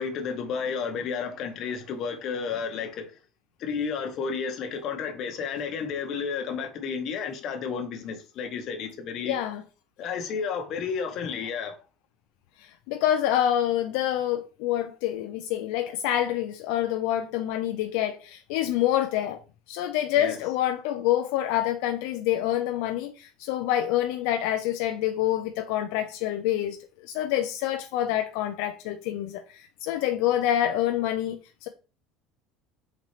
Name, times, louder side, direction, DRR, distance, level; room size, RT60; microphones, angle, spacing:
voice 1, 0.0-3.1 3.6-9.4 10.0-11.8 20.2-20.4, left 6 dB, 45° left, 0.9 m, -32 dB
voice 2, 9.2-9.6 12.6-19.4 19.7-26.8 27.0-31.7, left 12 dB, 70° left, 0.4 m, -27 dB
4.2 x 3.8 x 3.2 m
cardioid pair, 150°, 0 cm